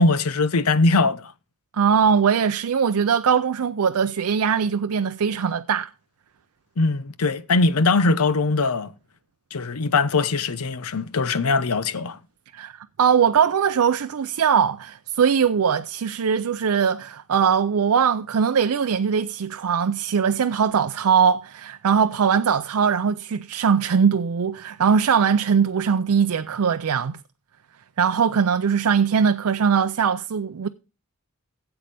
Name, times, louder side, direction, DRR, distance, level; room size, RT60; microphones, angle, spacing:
voice 1, 0.0-1.3 6.8-8.9 9.5-12.2, left 3 dB, 75° left, 0.7 m, -21 dB
voice 2, 1.7-5.9 12.5-27.2 28.0-30.7, right 7 dB, 75° right, 0.5 m, -21 dB
16.5 x 7.9 x 3.4 m
head